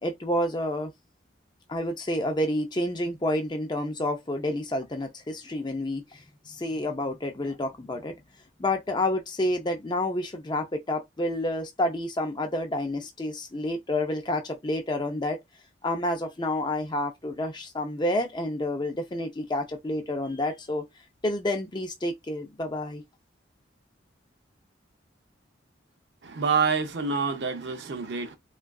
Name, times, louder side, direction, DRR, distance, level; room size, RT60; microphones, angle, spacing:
voice 1, 0.0-0.9 1.7-8.2 8.6-15.4 15.8-20.8 21.2-23.0, left 1 dB, 25° left, 0.5 m, -29 dB
voice 2, 26.2-28.4, right 5 dB, 60° right, 0.5 m, -27 dB
3.5 x 2.3 x 2.2 m
head